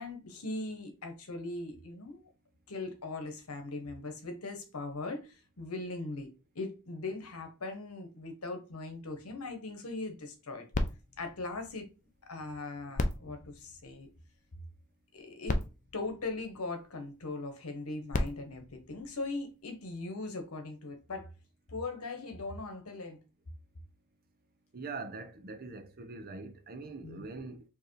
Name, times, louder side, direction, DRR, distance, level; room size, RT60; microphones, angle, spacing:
voice 1, 0.0-2.2 2.7-6.3 6.5-10.6 11.2-11.9 12.2-14.1 15.1-15.6 15.9-21.3 21.7-23.2 27.0-27.3, left 3 dB, 80° left, 1.1 m, -40 dB
sound 1, 10.7-12.4 12.9-14.5 15.2-15.3 15.4-17.0 17.8-19.7 20.4-20.5, left 2 dB, 35° left, 0.5 m, -37 dB
voice 2, 24.7-27.6, right 3 dB, 45° right, 0.7 m, -43 dB
4.6 x 2.9 x 3.2 m
head